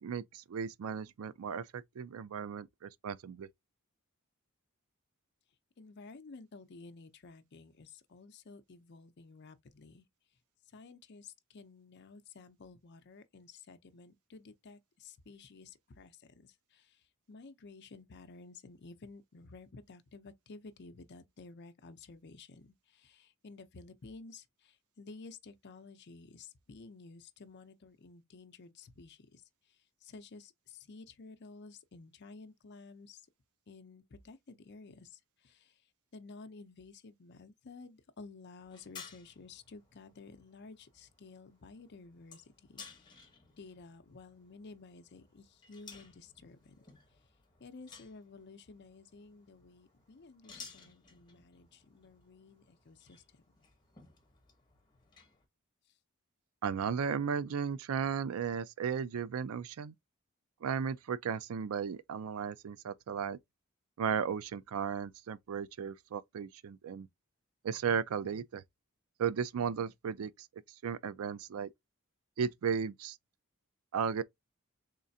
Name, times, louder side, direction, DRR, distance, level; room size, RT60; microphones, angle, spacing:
voice 1, 0.0-3.5 56.6-59.9 60.6-63.4 64.0-67.1 67.6-68.6 69.2-70.3 70.8-71.7 72.4-73.2 73.9-74.2, right 7 dB, 75° right, 0.4 m, -35 dB
voice 2, 5.8-10.0 10.7-33.3 33.7-43.3 43.6-46.8 47.6-53.6, left 3 dB, 50° left, 0.6 m, -53 dB
sound 1, 38.6-55.5, left 5 dB, 20° left, 1.0 m, -57 dB
3.7 x 3.2 x 2.6 m
head